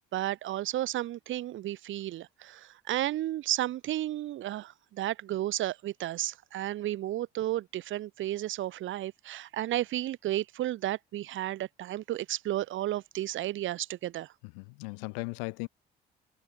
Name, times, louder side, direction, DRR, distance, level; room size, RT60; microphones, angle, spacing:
voice 1, 0.0-14.3, right 14 dB, 65° right, 3.2 m, -33 dB
voice 2, 14.4-15.7, left 40 dB or more, 80° left, 4.7 m, -37 dB
hypercardioid pair, 55°, 21 cm